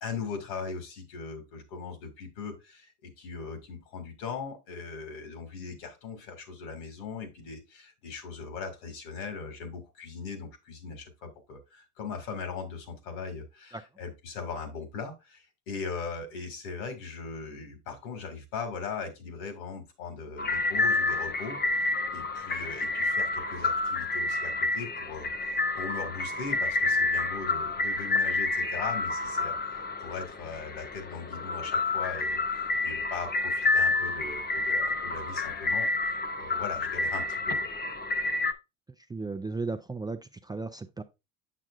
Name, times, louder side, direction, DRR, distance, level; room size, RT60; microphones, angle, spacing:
voice 1, 0.0-32.4 32.8-37.7, left 5 dB, 80° left, 2.2 m, -39 dB
sound 1, 20.4-38.5, left 3 dB, 25° left, 0.8 m, -29 dB
voice 2, 39.1-41.0, right 3 dB, 10° right, 0.4 m, -35 dB
7.5 x 6.4 x 2.5 m
supercardioid pair, 95°, 38 cm